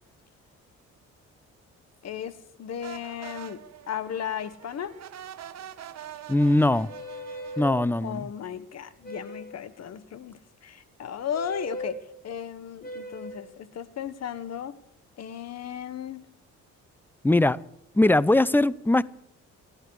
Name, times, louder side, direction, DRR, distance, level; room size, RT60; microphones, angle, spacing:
voice 1, 2.0-5.0 8.0-14.8 15.2-16.2, left 8 dB, 60° left, 1.3 m, -35 dB
sound 1, 2.8-7.8, right 11 dB, 60° right, 1.1 m, -44 dB
voice 2, 6.3-6.9 7.6-8.3 17.2-17.6 17.9-19.0, left 1 dB, 5° left, 0.6 m, -21 dB
sound 2, 6.9-7.8 9.0-9.6 11.3-12.0 12.8-13.5, equal, 30° left, 4.5 m, -38 dB
28.0 x 10.5 x 4.8 m
cardioid pair, 90°, 30 cm